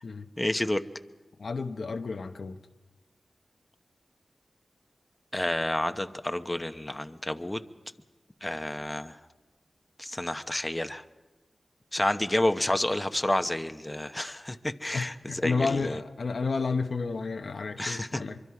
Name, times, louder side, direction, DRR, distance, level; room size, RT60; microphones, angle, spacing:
voice 1, 0.4-0.8 5.3-7.6 8.4-9.2 10.0-11.0 11.9-16.0 17.8-18.2, left 1 dB, 20° left, 0.9 m, -29 dB
voice 2, 1.4-2.6 14.9-18.4, left 4 dB, 75° left, 0.9 m, -31 dB
24.0 x 23.5 x 4.8 m
cardioid pair, 50°, 0 cm